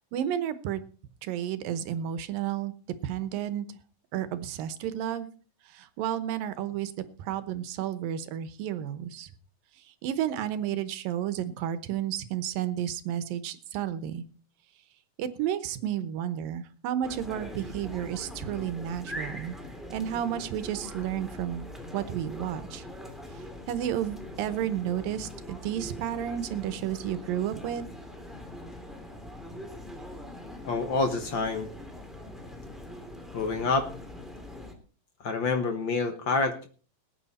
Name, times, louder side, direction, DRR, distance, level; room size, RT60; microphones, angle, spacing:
voice 1, 0.1-0.8 1.2-2.7 3.0-3.7 4.1-5.3 5.7-6.9 7.2-9.3 9.9-14.2 15.2-19.6 19.9-22.8 23.4-27.9, right 10 dB, 80° right, 12 dB, 2.7 m, -32 dB
sound 1, 17.0-34.7, left 1 dB, ahead, 2.2 m, -42 dB
voice 2, 30.6-31.7 33.3-33.9 35.2-36.7, left 3 dB, 65° left, 7 dB, 1.2 m, -27 dB
19.0 x 9.6 x 4.2 m, 0.40 s
omnidirectional pair, 4.0 m